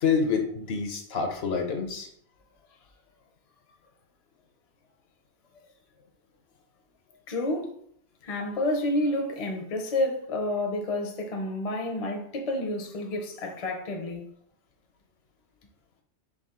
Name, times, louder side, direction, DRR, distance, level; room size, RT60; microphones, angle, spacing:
voice 1, 0.0-2.1, left 5 dB, 65° left, 0.9 m, -27 dB
voice 2, 7.3-7.7 8.2-14.2, left 1 dB, 40° left, 0.6 m, -29 dB
4.8 x 2.3 x 3.6 m
omnidirectional pair, 1.2 m